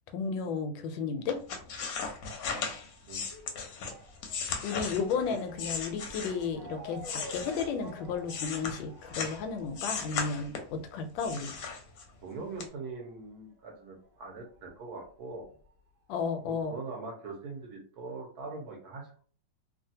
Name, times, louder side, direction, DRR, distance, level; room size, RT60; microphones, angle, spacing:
voice 1, 0.1-1.4 4.6-11.5 16.1-16.7, left 5 dB, 85° left, 7 dB, 1.3 m, -33 dB
Motor vehicle (road) / Siren, 1.2-14.2 14.4-15.6 16.3-16.4 16.6-16.7, equal, 35° right, 1.0 m, -51 dB
sound 1, 1.3-6.6 7.0-9.4 9.7-10.8 11.2-12.2 12.6-12.7, left 5 dB, 65° left, 1.0 m, -37 dB
voice 2, 12.2-15.5 16.4-19.2, right 3 dB, 65° right, 0 dB, 1.2 m, -42 dB
3.1 x 2.3 x 2.7 m, 0.43 s
omnidirectional pair, 2.0 m